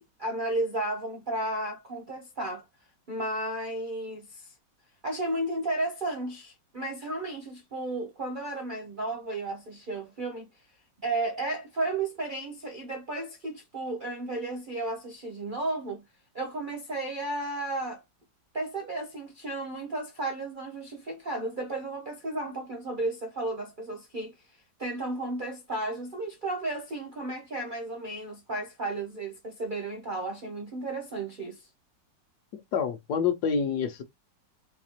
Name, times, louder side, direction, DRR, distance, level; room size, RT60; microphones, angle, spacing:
voice 1, 0.0-2.6 3.1-4.5 5.0-10.5 11.0-16.0 16.3-18.0 18.5-24.3 24.8-31.7, right 2 dB, 60° right, 0.5 m, -33 dB
voice 2, 32.5-34.0, left 6 dB, 65° left, 1.2 m, -27 dB
4.1 x 2.5 x 2.8 m
omnidirectional pair, 2.0 m